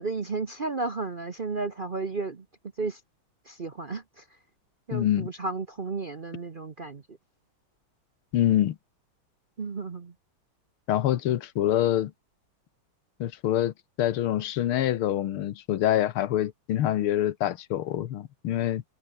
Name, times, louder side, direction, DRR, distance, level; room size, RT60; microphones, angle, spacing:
voice 1, 0.0-2.4 2.8-3.0 3.5-4.2 4.9-7.0 9.6-10.1, right 3 dB, 40° right, 0.8 m, -33 dB
voice 2, 4.9-5.3 8.3-8.8 10.9-12.1 13.2-18.8, left 12 dB, 90° left, 1.9 m, -26 dB
omnidirectional pair, 2.3 m